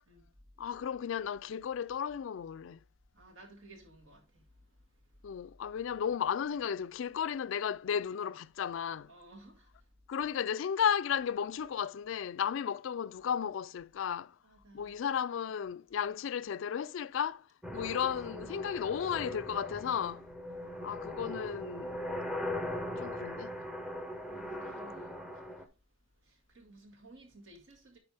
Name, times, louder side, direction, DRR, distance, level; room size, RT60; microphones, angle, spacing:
voice 1, 0.6-2.8 5.2-9.1 10.1-14.3 14.7-17.4 17.7-20.2 20.8-22.0 23.0-23.5, left 8 dB, 70° left, 0.3 m, -34 dB
voice 2, 3.1-5.4 9.1-9.9 14.4-15.0 22.7-23.0 24.3-25.7 26.2-28.0, right 2 dB, 80° right, 1.9 m, -57 dB
sound 1, 17.6-25.7, left 1 dB, ahead, 0.6 m, -40 dB
9.7 x 4.3 x 3.4 m
head